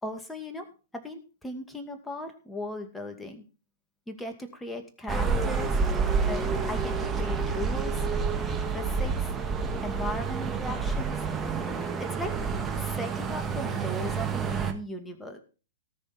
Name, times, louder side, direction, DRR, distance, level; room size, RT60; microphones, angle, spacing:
voice 1, 0.0-0.7 0.9-3.4 4.1-5.8 6.3-8.0 8.7-9.3 9.8-11.2 12.0-12.4 12.8-15.4, left 1 dB, 5° left, 5 dB, 2.3 m, -37 dB
sound 1, 5.1-14.7, right 5 dB, 15° right, 1.9 m, -29 dB
18.5 x 6.5 x 4.6 m, 0.34 s
figure-of-eight pair, 110°, 0 cm